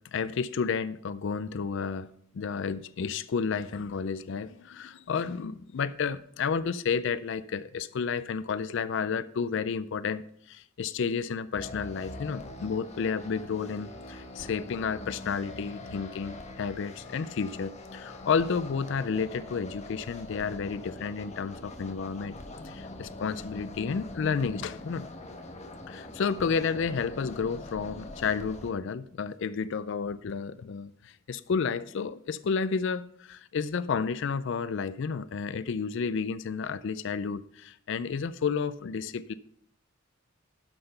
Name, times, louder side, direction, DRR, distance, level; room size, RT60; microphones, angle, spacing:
voice 1, 0.1-22.3 22.6-25.1 25.9-39.3, left 5 dB, 65° left, 16 dB, 0.4 m, -31 dB
sound 1, 11.5-28.7, left 2 dB, 35° left, 1.1 m, -43 dB
12.0 x 5.9 x 5.6 m, 0.65 s
head